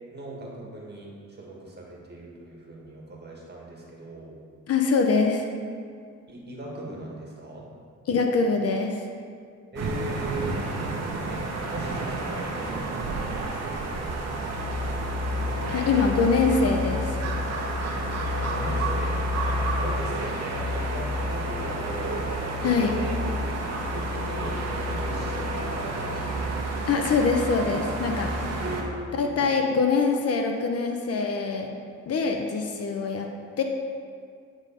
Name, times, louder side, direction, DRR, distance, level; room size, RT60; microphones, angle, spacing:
voice 1, 0.0-4.4 6.3-7.7 9.7-10.6 11.3-11.4 11.7-14.4 18.4-19.1 19.8-26.6 28.6-29.5, right 2 dB, 35° right, -3 dB, 1.9 m, -39 dB
voice 2, 4.7-5.5 8.1-9.1 15.7-17.2 22.6-22.9 26.9-28.3 29.2-31.7 32.1-33.3 33.6-33.7, left 4 dB, 55° left, 3 dB, 0.8 m, -24 dB
sound 1, 9.8-28.8, equal, 60° right, 1.2 m, -29 dB
9.7 x 3.8 x 5.1 m, 2.2 s
cardioid pair, 90°, 30 cm